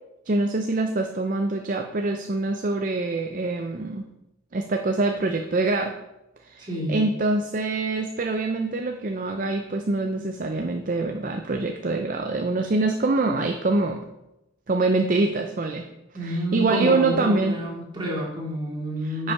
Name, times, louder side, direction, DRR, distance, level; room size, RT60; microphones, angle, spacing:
voice 1, 0.3-4.1 4.5-5.9 6.4-14.0 14.7-15.9 16.2-17.6 19.0-19.3, right 3 dB, 40° right, 4 dB, 0.5 m, -25 dB
voice 2, 6.6-7.0 16.1-19.3, equal, 20° right, -4 dB, 2.4 m, -29 dB
9.7 x 5.5 x 4.8 m, 0.93 s
head